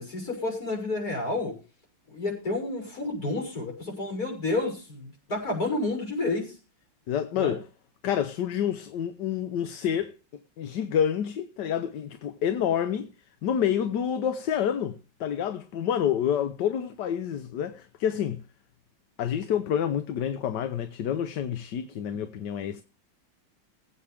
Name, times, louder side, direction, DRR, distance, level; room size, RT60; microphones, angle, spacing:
voice 1, 0.0-1.6 2.1-6.6 7.3-7.5, left 2 dB, 55° left, 7.0 m, -30 dB
voice 2, 7.1-7.6 8.0-10.1 10.6-13.1 13.4-18.4 19.2-22.8, left 9 dB, 70° left, 1.5 m, -28 dB
21.0 x 8.7 x 3.4 m
omnidirectional pair, 2.0 m